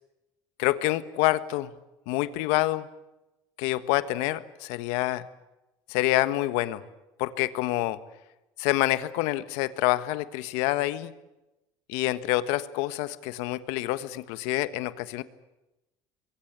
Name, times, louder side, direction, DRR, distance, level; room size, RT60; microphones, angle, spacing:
voice 1, 0.6-1.7 2.1-2.9 3.6-5.2 5.9-6.8 7.2-8.0 8.6-11.1 11.9-15.2, left 17 dB, 85° left, 13 dB, 1.5 m, -27 dB
27.0 x 22.5 x 8.3 m, 0.97 s
cardioid pair, 125°, 11 cm